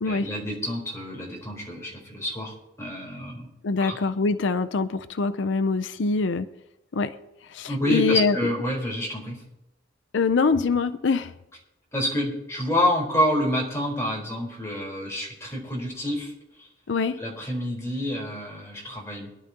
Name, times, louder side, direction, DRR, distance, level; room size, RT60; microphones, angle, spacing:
voice 1, 0.0-3.5 3.8-4.0 7.7-9.4 11.9-16.7 17.2-19.3, equal, 15° left, -3 dB, 4.0 m, -28 dB
voice 2, 3.6-6.5 6.9-7.1 7.5-8.4 10.1-11.3 16.9-17.2, left 4 dB, 70° left, 11 dB, 0.5 m, -24 dB
23.5 x 11.0 x 2.9 m, 0.90 s
head